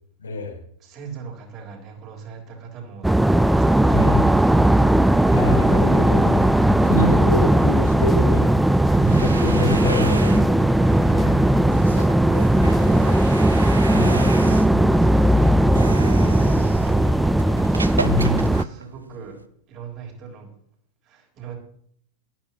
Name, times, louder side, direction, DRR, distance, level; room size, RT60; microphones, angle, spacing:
voice 1, 0.2-0.6 3.9-4.3 5.3-8.5 9.2-10.7 11.0-11.4 13.9-14.4 18.0-18.5, left 2 dB, 75° left, 1 dB, 2.9 m, -27 dB
voice 2, 0.8-4.7 12.2-13.2 14.0-17.3 18.4-19.4 19.7-20.5 21.1-21.6, right 5 dB, 35° right, 1 dB, 3.7 m, -38 dB
sound 1, 3.0-18.6, right 1 dB, 5° right, 0.4 m, -17 dB
sound 2, 6.9-12.9, left 6 dB, 20° left, 0.8 m, -39 dB
sound 3, 8.8-19.5, right 4 dB, 80° right, 0.6 m, -35 dB
18.5 x 12.5 x 2.9 m, 0.64 s
figure-of-eight pair, 90°, 0 cm